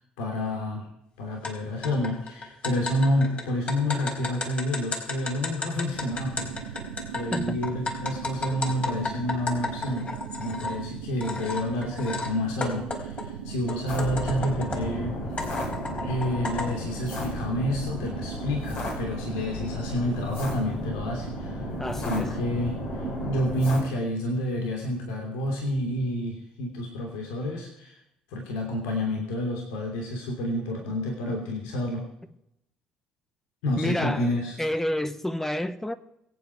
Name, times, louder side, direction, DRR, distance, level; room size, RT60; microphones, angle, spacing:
voice 1, 0.2-0.9 1.2-6.8 7.1-15.2 16.0-21.7 22.1-27.9 28.3-32.1 33.6-34.5, left 1 dB, 70° left, 3.0 m, -29 dB
sound 1, 1.4-1.5 1.8-10.8 11.2-12.3 12.6-14.9 15.4-16.7, left 3 dB, 35° left, 4.5 m, -33 dB
sound 2, 5.9-23.4, right 8 dB, 90° right, 1.6 m, -39 dB
sound 3, 13.9-23.8, left 2 dB, 55° left, 5.0 m, -35 dB
voice 2, 21.8-22.3 30.9-31.0 31.3-31.4 33.8-35.9, left 1 dB, 10° left, 1.1 m, -30 dB
23.0 x 9.1 x 4.7 m
hypercardioid pair, 55°, 4 cm